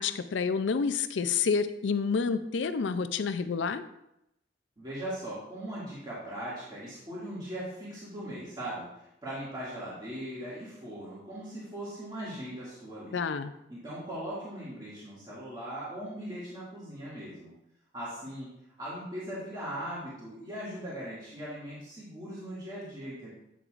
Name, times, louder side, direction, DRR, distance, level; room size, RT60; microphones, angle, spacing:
voice 1, 0.0-3.8 13.1-13.5, left 5 dB, 75° left, 11 dB, 0.4 m, -29 dB
voice 2, 4.8-8.8 9.2-13.2 13.7-17.5 17.9-18.5 18.8-23.3, right 1 dB, 25° right, -10 dB, 2.2 m, -39 dB
8.5 x 6.8 x 2.5 m, 0.83 s
head